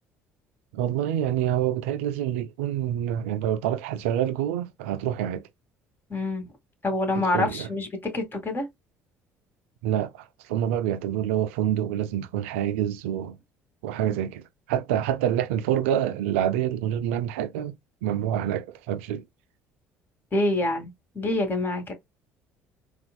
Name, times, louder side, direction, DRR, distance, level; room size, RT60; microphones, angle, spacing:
voice 1, 0.7-5.4 7.1-7.7 9.8-13.4 13.8-17.7 18.0-19.2, right 10 dB, 85° right, 0.4 m, -27 dB
voice 2, 6.1-6.5 6.8-8.7 20.3-21.9, left 2 dB, 30° left, 2.0 m, -26 dB
4.2 x 2.4 x 2.2 m
hypercardioid pair, 65°, 7 cm